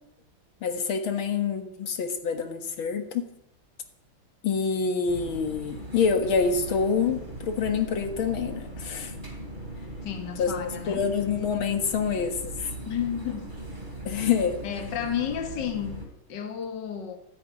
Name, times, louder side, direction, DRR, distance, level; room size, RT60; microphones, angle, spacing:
voice 1, 0.6-3.3 4.4-9.1 10.4-12.6 14.1-14.6, left 6 dB, 75° left, 7 dB, 2.3 m, -27 dB
sound 1, 5.1-16.1, right 1 dB, 20° right, 3.2 m, -39 dB
voice 2, 10.0-11.0 12.6-13.5 14.6-17.2, left 9 dB, 60° left, 7 dB, 2.1 m, -32 dB
14.0 x 9.7 x 9.5 m, 0.82 s
omnidirectional pair, 2.3 m